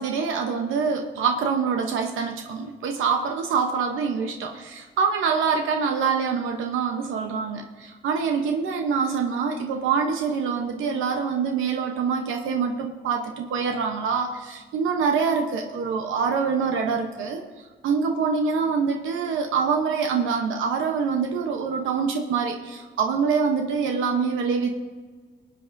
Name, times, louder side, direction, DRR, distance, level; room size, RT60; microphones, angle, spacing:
voice 1, 0.0-17.4 17.8-24.7, right 5 dB, 85° right, 3 dB, 0.9 m, -25 dB
19.0 x 8.4 x 2.6 m, 1.5 s
cardioid pair, 90°, 20 cm